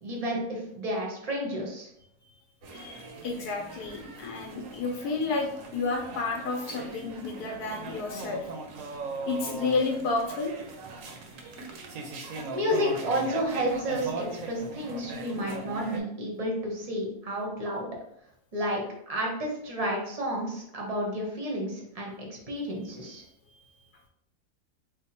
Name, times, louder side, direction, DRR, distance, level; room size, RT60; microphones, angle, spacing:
voice 1, 0.0-1.9 12.5-17.9 18.5-23.2, equal, 35° right, -1 dB, 0.6 m, -31 dB
sound 1, 2.6-16.0, right 3 dB, 65° right, 0.9 m, -39 dB
voice 2, 2.7-8.5 9.3-10.5 23.1-23.2 23.5-23.8, left 3 dB, 80° left, 1 dB, 1.2 m, -31 dB
3.5 x 2.1 x 4.1 m, 0.76 s
omnidirectional pair, 1.7 m